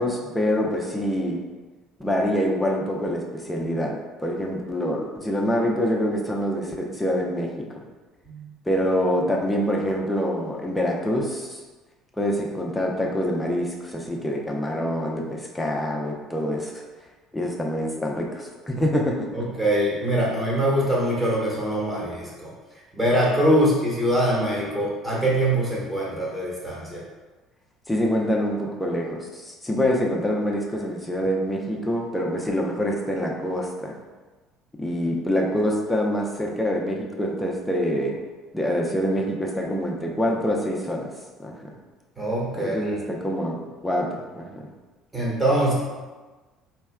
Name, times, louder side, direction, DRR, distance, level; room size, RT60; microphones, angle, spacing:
voice 1, 0.0-1.4 2.0-3.9 4.2-7.8 8.7-11.6 12.2-16.8 17.3-19.5 27.9-33.9 34.8-38.2 38.5-41.1 41.4-41.6 42.5-43.6 43.8-44.1 44.4-44.7, equal, 10° left, -1 dB, 0.7 m, -25 dB
voice 2, 19.3-22.5 22.9-27.0 42.2-42.9 45.1-45.7, right 1 dB, 10° right, -5 dB, 1.5 m, -23 dB
4.2 x 3.3 x 2.2 m, 1.3 s
figure-of-eight pair, 60°, 0 cm